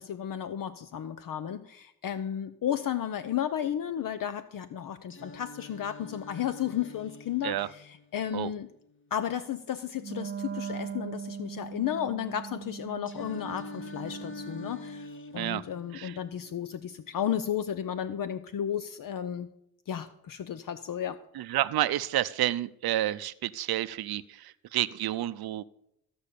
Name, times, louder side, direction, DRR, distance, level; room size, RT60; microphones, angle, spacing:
voice 1, 0.0-8.7 9.1-19.5 19.9-21.2, left 9 dB, 60° left, 12 dB, 0.7 m, -33 dB
Singing, 5.1-9.1 13.1-17.1, left 2 dB, 35° left, 1.2 m, -46 dB
Wind instrument woodwind instrument, 10.0-15.1, right 7 dB, 35° right, 0.6 m, -40 dB
voice 2, 21.3-25.6, right 13 dB, 80° right, 15 dB, 0.6 m, -30 dB
15.5 x 5.5 x 8.4 m, 0.77 s
cardioid pair, 105°, 37 cm